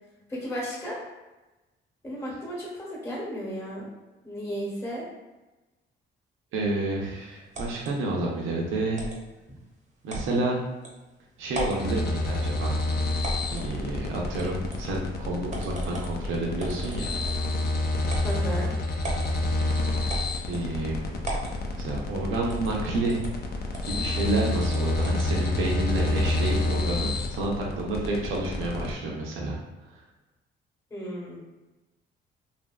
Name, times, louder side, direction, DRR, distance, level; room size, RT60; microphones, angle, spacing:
voice 1, 0.3-1.0 2.0-3.9 4.2-5.0 9.5-9.6 18.2-18.7 30.9-31.4, equal, 15° left, -5 dB, 1.0 m, -34 dB
voice 2, 6.5-9.0 10.0-10.6 11.4-12.8 13.5-17.1 20.5-21.0 21.8-23.2 23.8-29.6, right 2 dB, 85° right, -2 dB, 0.7 m, -29 dB
sound 1, 7.5-7.9 9.0-9.2 10.1-10.3 10.8-10.9 11.5-11.9 13.2-13.7 14.4-14.8 15.5-16.2 16.6-17.5 18.1-18.4 19.0-19.3 20.1-20.7 21.2-21.6 22.5-22.8 23.1-23.3 23.7-24.0 24.6-25.3, right 2 dB, 35° right, 0.7 m, -35 dB
sound 2, 11.8-28.9, left 2 dB, 55° left, 0.5 m, -29 dB
2.8 x 2.5 x 2.2 m, 1.1 s
cardioid pair, 90°, 20 cm